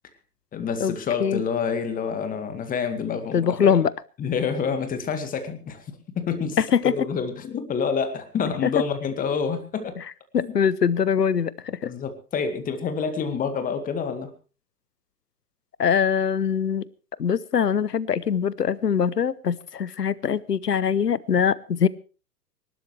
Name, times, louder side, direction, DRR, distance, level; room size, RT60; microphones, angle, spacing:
voice 1, 0.5-3.8 4.2-5.8 6.2-6.6 6.8-10.0 10.4-10.5 11.9-14.3, left 6 dB, 15° left, 9 dB, 2.0 m, -28 dB
voice 2, 3.3-3.9 6.6-6.9 8.6-8.7 10.3-11.9 15.8-16.9 17.2-21.9, left 7 dB, 80° left, 21 dB, 1.0 m, -22 dB
26.0 x 12.5 x 3.3 m, 0.35 s
figure-of-eight pair, 115°, 48 cm